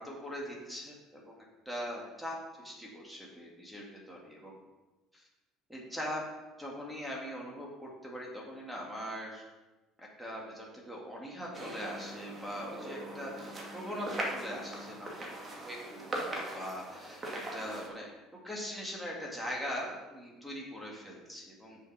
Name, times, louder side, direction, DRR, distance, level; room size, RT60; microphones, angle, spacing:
voice 1, 0.0-1.3 1.6-4.5 5.1-5.2 5.7-6.2 6.6-9.4 10.0-15.3 15.6-18.1 18.4-21.8, equal, ahead, -3 dB, 2.7 m, -41 dB
sound 1, 11.5-17.9, right 1 dB, 30° right, 2.4 m, -40 dB
6.8 x 6.7 x 5.3 m, 1.1 s
figure-of-eight pair, 60°, 0 cm